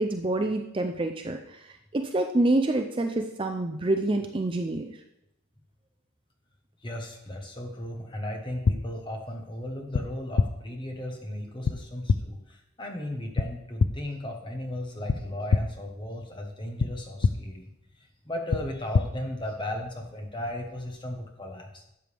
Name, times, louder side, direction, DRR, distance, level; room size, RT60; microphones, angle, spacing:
voice 1, 0.0-1.6 1.9-4.8, right 2 dB, 25° right, 5 dB, 0.5 m, -27 dB
voice 2, 6.8-17.7 18.2-21.8, left 1 dB, 20° left, 2 dB, 1.3 m, -36 dB
sound 1, 8.6-8.8 9.9-10.0 10.4-10.5 11.6-11.7 12.1-12.2 13.4-13.5 13.8-13.9 15.1-15.2 15.5-15.6 16.8-16.9 17.2-17.3 18.5-18.6 18.9-19.1, left 4 dB, 55° left, 0.4 m, -22 dB
12.0 x 7.6 x 3.5 m, 0.81 s
head